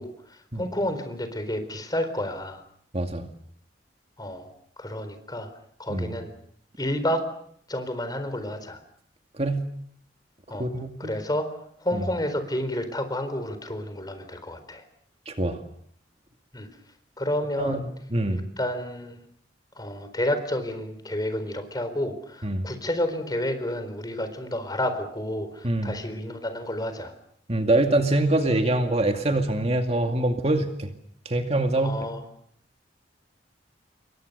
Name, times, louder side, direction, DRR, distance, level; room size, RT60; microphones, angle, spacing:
voice 1, 0.0-2.6 4.2-4.5 4.8-5.5 5.8-6.3 6.8-7.2 7.7-8.8 10.5-10.7 11.0-11.5 11.8-14.8 16.5-16.7 17.2-17.8 18.3-19.2 19.8-27.1 31.8-32.2, left 1 dB, 25° left, 9 dB, 4.2 m, -30 dB
voice 2, 2.9-3.3 5.9-6.1 9.3-9.7 10.6-11.1 11.9-12.0 15.3-15.6 17.6-18.5 22.4-22.7 25.6-26.0 27.5-30.9 31.3-32.1, right 1 dB, 35° right, 5 dB, 2.2 m, -24 dB
28.5 x 23.0 x 6.8 m, 0.67 s
head